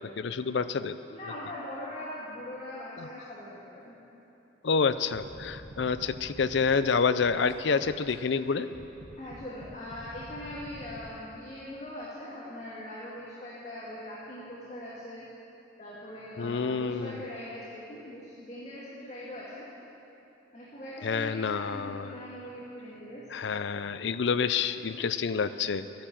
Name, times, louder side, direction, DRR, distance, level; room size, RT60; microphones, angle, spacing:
voice 1, 0.2-1.0 3.0-3.1 4.6-8.7 16.4-17.2 21.0-22.2 23.3-26.1, left 5 dB, 65° left, 13 dB, 0.5 m, -28 dB
voice 2, 1.1-4.0 9.2-15.2 15.8-19.7 20.5-23.3, left 1 dB, 35° left, -7 dB, 2.1 m, -41 dB
sound 1, 5.1-8.2 8.7-11.1, right 1 dB, 80° right, 1.7 m, -47 dB
14.0 x 10.5 x 7.6 m, 3.0 s
head